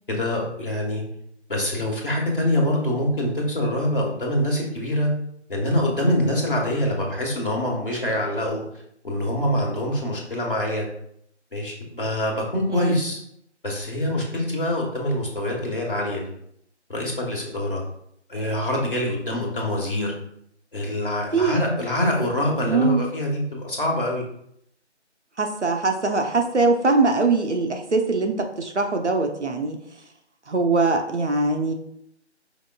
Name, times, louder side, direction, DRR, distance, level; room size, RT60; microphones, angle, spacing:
voice 1, 0.1-1.0 1.5-5.1 5.5-8.6 9.0-10.9 11.5-13.2 13.6-16.3 16.9-17.8 18.3-20.1 20.7-24.2, left 1 dB, 45° left, -2 dB, 1.3 m, -25 dB
voice 2, 22.7-23.0 25.4-29.8 30.5-31.7, right 3 dB, 70° right, 4 dB, 0.8 m, -22 dB
5.0 x 3.8 x 2.3 m, 0.72 s
figure-of-eight pair, 175°, 35 cm